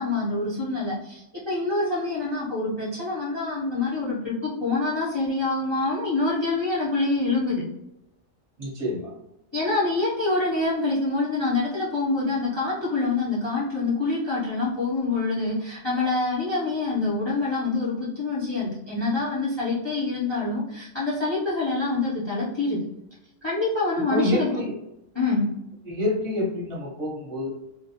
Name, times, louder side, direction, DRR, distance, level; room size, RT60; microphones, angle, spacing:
voice 1, 0.0-7.6 9.5-22.8 23.4-24.5 25.1-25.5, left 3 dB, 40° left, -8 dB, 0.4 m, -26 dB
voice 2, 8.6-9.1 24.1-24.8 25.8-27.5, left 1 dB, 35° right, -4 dB, 0.8 m, -27 dB
2.2 x 2.0 x 2.7 m, 0.87 s
omnidirectional pair, 1.3 m